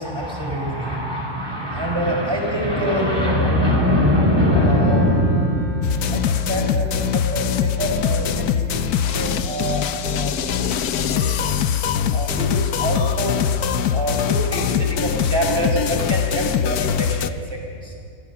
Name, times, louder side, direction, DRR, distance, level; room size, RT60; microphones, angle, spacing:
voice 1, 0.0-10.7 11.1-11.5 12.1-17.9, equal, 15° right, 0 dB, 5.2 m, -23 dB
Wind instrument woodwind instrument, 4.5-11.6, right 5 dB, 50° left, 3.3 m, -37 dB
sound 1, 5.8-17.3, left 8 dB, 80° left, 1.3 m, -22 dB
28.0 x 26.0 x 5.9 m, 2.4 s
omnidirectional pair, 1.6 m